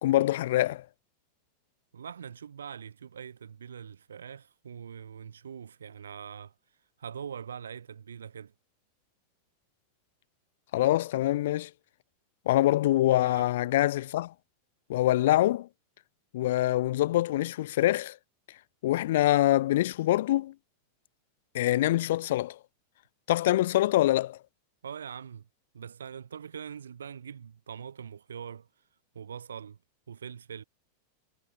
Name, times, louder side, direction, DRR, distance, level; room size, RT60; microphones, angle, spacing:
voice 1, 0.0-0.8 10.7-11.7 12.4-14.3 14.9-15.7 16.3-18.2 18.8-20.5 21.5-22.6 23.3-24.4, left 15 dB, 55° left, 1.3 m, -25 dB
voice 2, 1.9-6.5 7.0-8.5 13.1-13.5 24.8-25.5 25.7-28.7 29.1-29.8 30.1-30.6, right 7 dB, 70° right, 2.4 m, -43 dB
figure-of-eight pair, 90°, 0 cm